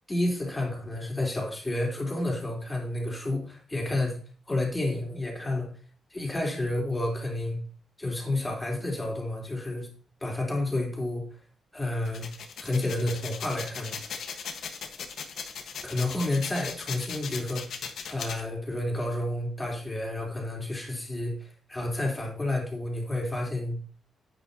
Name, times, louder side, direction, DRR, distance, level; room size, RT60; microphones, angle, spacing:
voice 1, 0.1-4.2 4.5-5.7 6.1-7.6 8.0-9.9 10.2-11.2 11.7-12.3 12.6-14.0 15.8-17.6 18.1-23.8, left 1 dB, 15° left, -1 dB, 3.5 m, -30 dB
sound 1, 12.0-18.4, left 6 dB, 70° left, 1.3 m, -38 dB
10.5 x 9.0 x 2.8 m, 0.40 s
cardioid pair, 125°, 0 cm